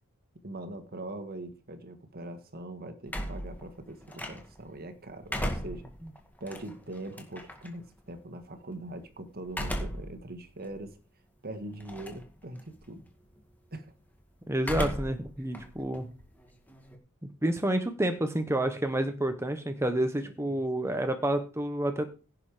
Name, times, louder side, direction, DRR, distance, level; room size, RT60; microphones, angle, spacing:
voice 1, 0.4-5.9 6.4-11.0 11.4-13.0 13.7-13.9 15.4-15.5 20.2-20.6, right 1 dB, 45° right, 1.8 m, -42 dB
sound 1, 3.1-4.7 5.1-7.7 9.5-10.2 10.7-10.8 11.8-12.3 12.6-13.0 14.6-15.3 15.5-17.0, equal, 10° left, 2.2 m, -36 dB
voice 2, 14.5-16.1 17.4-22.1, right 1 dB, 10° right, 1.1 m, -29 dB
16.5 x 6.7 x 5.1 m
head